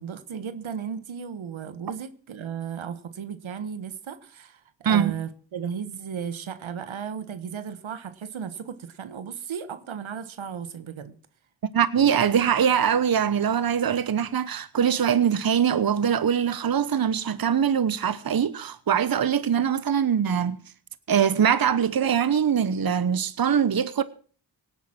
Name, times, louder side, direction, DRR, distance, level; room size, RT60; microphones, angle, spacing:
voice 1, 0.0-11.2, right 7 dB, 80° right, 1.4 m, -35 dB
voice 2, 4.8-5.2 11.6-20.6 21.1-24.0, right 8 dB, 50° right, 1.0 m, -22 dB
18.0 x 9.1 x 6.0 m
cardioid pair, 45°, 46 cm